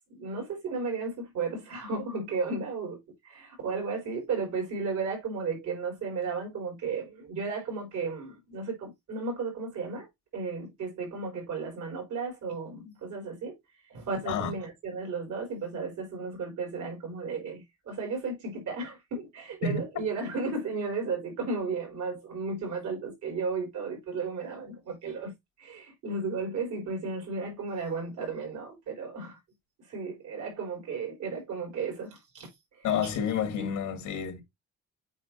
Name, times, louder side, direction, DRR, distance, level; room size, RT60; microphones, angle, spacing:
voice 1, 0.1-10.1 10.3-13.6 13.9-25.3 25.6-29.4 29.9-32.9, right 4 dB, 75° right, 4.2 m, -34 dB
voice 2, 32.8-34.4, left 7 dB, 90° left, 2.6 m, -29 dB
8.3 x 4.6 x 2.8 m
cardioid pair, 90°, 30 cm